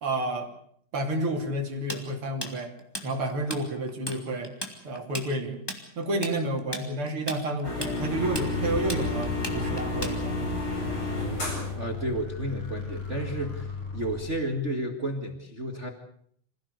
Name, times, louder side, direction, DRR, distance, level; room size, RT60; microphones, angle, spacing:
voice 1, 0.0-0.5 0.9-2.7 3.0-4.5 4.8-5.6 6.0-10.5, right 1 dB, 45° right, 4 dB, 3.7 m, -30 dB
Tools, 1.9-3.6 3.9-4.2 4.4-10.5, left 1 dB, 10° left, 2.6 m, -36 dB
sound 1, 7.6-11.8, left 2 dB, 40° left, 8.3 m, -31 dB
sound 2, 8.1-14.3, left 4 dB, 60° left, 8.4 m, -37 dB
voice 2, 11.8-15.9, right 1 dB, 25° right, 5 dB, 2.0 m, -32 dB
26.5 x 16.0 x 8.2 m, 0.65 s
omnidirectional pair, 3.4 m